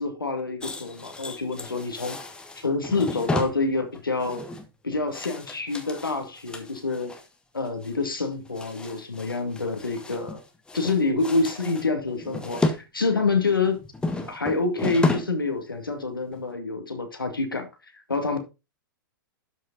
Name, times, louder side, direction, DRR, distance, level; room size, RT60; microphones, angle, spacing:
voice 1, 0.0-2.2 2.6-4.4 4.8-7.1 7.5-10.4 10.7-13.8 14.3-17.7 18.1-18.4, left 3 dB, 85° left, 2.2 m, -27 dB
sound 1, 0.6-7.3 7.6-7.9 8.2-10.4 10.7-12.8 13.2-15.4 15.7-15.9 16.3-16.4, left 2 dB, 10° left, 1.4 m, -32 dB
12.0 x 5.7 x 3.9 m
figure-of-eight pair, 105°, 11 cm